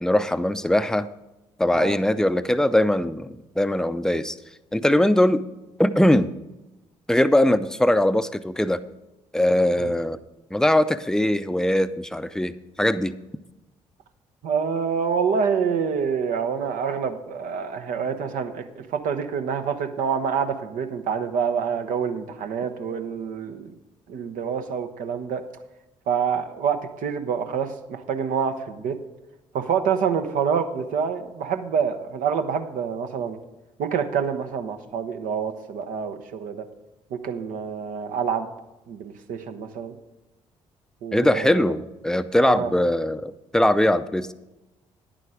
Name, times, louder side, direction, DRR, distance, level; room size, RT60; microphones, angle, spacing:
voice 1, 0.0-1.1 1.6-4.4 4.7-5.4 5.8-6.3 7.1-8.8 9.3-10.2 10.5-13.2 41.1-44.3, left 1 dB, 5° left, 13 dB, 0.6 m, -21 dB
voice 2, 14.4-23.7 24.1-25.4 26.1-29.0 29.5-33.4 33.8-36.6 37.1-38.5 38.9-40.0 41.0-41.6 42.4-42.7, right 6 dB, 65° right, 7 dB, 1.0 m, -27 dB
10.5 x 9.0 x 5.0 m, 1.0 s
figure-of-eight pair, 45°, 15 cm